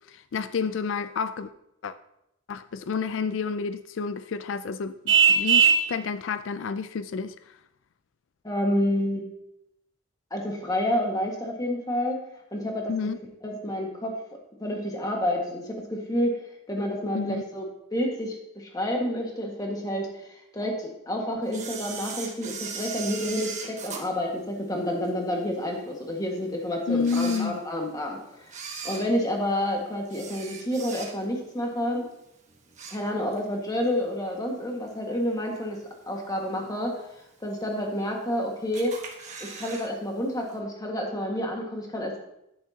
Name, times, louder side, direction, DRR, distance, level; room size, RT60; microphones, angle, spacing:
voice 1, 0.1-1.5 1.8-1.9 2.5-7.3 12.9-13.2 17.1-17.4 26.9-27.6, left 5 dB, 75° left, 0.4 m, -30 dB
Vehicle horn car horn honking, 5.1-5.9, right 6 dB, 65° right, 0.8 m, -18 dB
voice 2, 8.4-9.2 10.3-12.2 12.5-12.9 13.4-14.1 14.6-28.5 28.8-32.1 32.9-35.8 36.1-37.0 37.4-38.9 39.4-42.2, left 1 dB, 20° left, 1.7 m, -29 dB
Camera, 21.5-25.1 25.6-25.7 26.4-26.5 26.9-28.0 28.4-31.4 31.8-32.1 32.4-33.5 33.8-33.9 34.9-35.0 35.6-36.0 36.4-36.5 36.7-36.8 36.9-37.0 37.8-38.3 38.7-39.9 40.1-40.2 40.5-40.6, right 5 dB, 40° right, 1.4 m, -38 dB
10.0 x 10.0 x 2.8 m
head